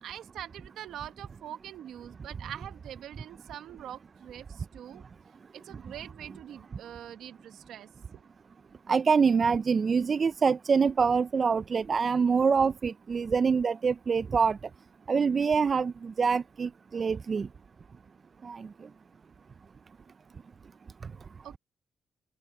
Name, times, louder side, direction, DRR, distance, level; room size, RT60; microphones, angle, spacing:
voice 1, 0.0-5.0 5.5-8.3 21.4-21.6, right 11 dB, 80° right, 1.3 m, -44 dB
voice 2, 8.9-14.6 15.1-17.5 18.4-18.7, right 5 dB, 45° right, 0.5 m, -25 dB
cardioid pair, 70°, 0 cm